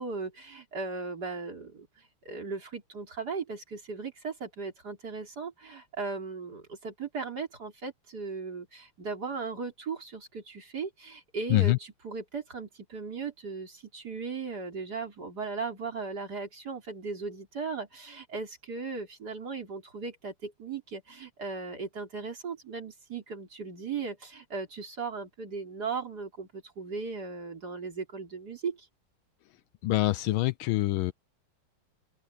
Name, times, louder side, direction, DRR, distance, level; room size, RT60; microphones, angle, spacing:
voice 1, 0.0-1.9 2.3-28.9, right 4 dB, 45° right, 4.1 m, -37 dB
voice 2, 29.8-31.1, left 17 dB, 75° left, 1.3 m, -25 dB
omnidirectional pair, 2.4 m